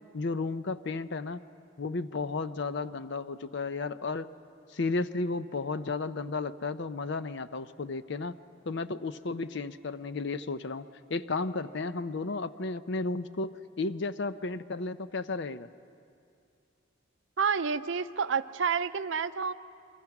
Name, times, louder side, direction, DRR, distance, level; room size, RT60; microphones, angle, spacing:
voice 1, 0.1-1.4 1.8-4.3 4.7-8.4 8.7-10.8 11.1-15.7, left 3 dB, 60° left, 13 dB, 0.6 m, -33 dB
voice 2, 17.4-19.5, right 6 dB, 65° right, 13 dB, 0.6 m, -29 dB
29.5 x 23.0 x 6.0 m, 2.4 s
head